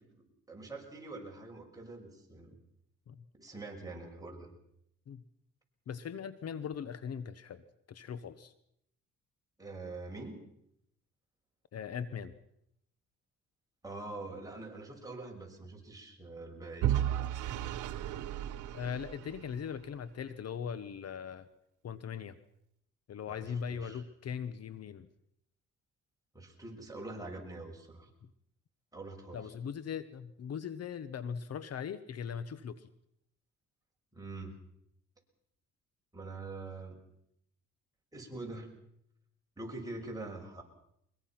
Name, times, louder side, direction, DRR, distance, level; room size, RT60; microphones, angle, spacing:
voice 1, 0.5-2.6 3.4-4.5 9.6-10.4 13.8-17.0 23.3-24.0 26.3-28.1 28.9-29.4 34.1-34.6 36.1-37.0 38.1-38.7 39.6-40.6, right 2 dB, 10° right, 0 dB, 5.9 m, -44 dB
voice 2, 5.9-8.5 11.7-12.3 18.7-21.5 21.8-22.4 23.1-25.1 29.3-32.9, left 7 dB, 55° left, 15 dB, 1.1 m, -40 dB
Vehicle / Engine, 16.8-19.8, right 12 dB, 80° right, 1.2 m, -34 dB
22.5 x 21.5 x 5.9 m, 0.75 s
cardioid pair, 90°, 30 cm